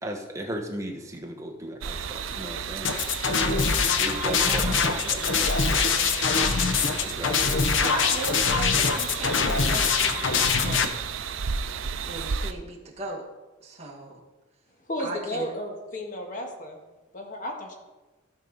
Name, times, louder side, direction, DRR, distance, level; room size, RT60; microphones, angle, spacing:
voice 1, 0.0-3.1 3.9-5.3 7.0-7.6, right 1 dB, 15° right, 2 dB, 1.2 m, -36 dB
sound 1, 1.8-12.5, right 7 dB, 80° right, 0.5 m, -33 dB
sound 2, 2.8-10.9, left 5 dB, 70° left, 0.8 m, -24 dB
voice 2, 4.4-7.3 7.8-10.9 12.1-13.3 13.6-14.2 15.0-15.6, right 2 dB, 35° right, -1 dB, 1.8 m, -38 dB
voice 3, 14.9-16.8 17.1-17.7, left 1 dB, 40° left, 2 dB, 1.6 m, -33 dB
16.0 x 5.4 x 4.0 m, 1.2 s
head